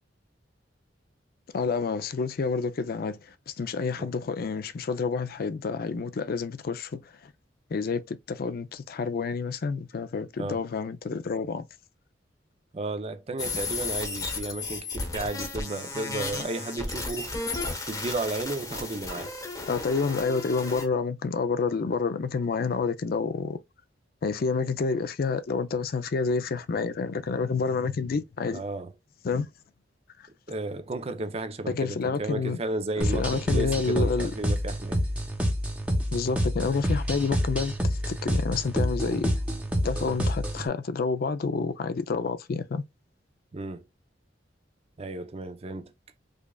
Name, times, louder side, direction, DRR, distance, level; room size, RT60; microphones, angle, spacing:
voice 1, 1.5-7.3 7.7-11.7 19.7-23.6 24.2-28.6 29.2-29.5 30.2-30.3 31.7-32.6 33.1-34.3 36.1-37.7 38.1-39.3 39.8-42.8, left 4 dB, 55° left, 0.4 m, -29 dB
voice 2, 12.7-17.4 17.9-19.3 28.5-28.9 30.5-35.0 43.5-43.8 45.0-45.9, right 2 dB, 35° right, 0.5 m, -33 dB
sound 1, 13.4-20.8, left 3 dB, 20° left, 1.0 m, -34 dB
sound 2, 33.0-40.7, equal, 5° right, 0.8 m, -28 dB
5.0 x 2.4 x 2.2 m
head